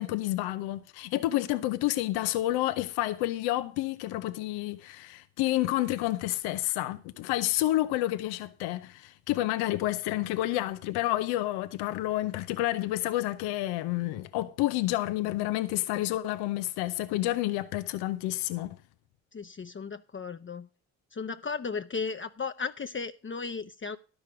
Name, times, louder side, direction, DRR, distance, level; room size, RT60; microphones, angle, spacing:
voice 1, 0.0-18.8, left 16 dB, 85° left, 0.8 m, -29 dB
voice 2, 19.3-20.7 21.1-24.0, left 5 dB, 30° left, 0.9 m, -35 dB
12.0 x 6.4 x 6.1 m
hypercardioid pair, 45°, 37 cm